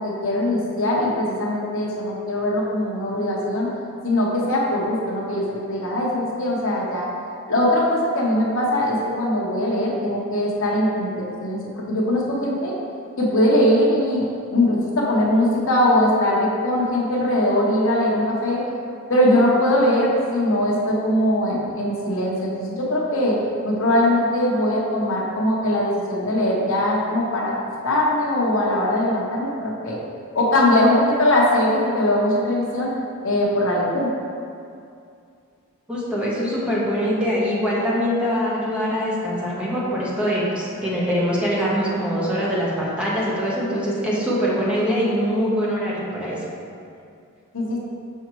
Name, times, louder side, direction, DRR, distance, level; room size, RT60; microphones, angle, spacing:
voice 1, 0.0-3.7 4.0-7.1 7.5-11.6 11.9-12.7 13.2-18.6 19.1-23.4 23.6-27.5 27.8-30.0 30.3-32.9 33.2-34.1 47.5-47.8, left 1 dB, 65° left, -3 dB, 1.0 m, -21 dB
voice 2, 35.9-46.4, equal, 5° right, -7 dB, 1.0 m, -23 dB
5.9 x 5.6 x 3.1 m, 2.4 s
head